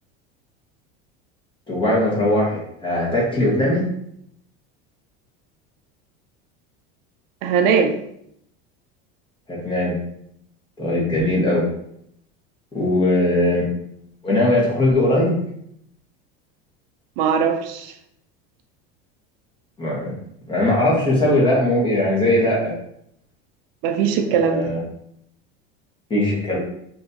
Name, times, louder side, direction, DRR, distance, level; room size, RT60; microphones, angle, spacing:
voice 1, 1.7-3.8 9.5-10.0 10.8-11.7 12.7-13.6 14.2-15.4 19.8-20.1 20.5-22.7 24.3-24.8 26.1-26.6, left 1 dB, 15° left, -5 dB, 1.4 m, -19 dB
voice 2, 7.4-7.9 17.2-17.9 23.8-24.6, right 6 dB, 75° right, 6 dB, 0.6 m, -20 dB
4.4 x 2.8 x 2.8 m, 0.72 s
supercardioid pair, 145°, 30 cm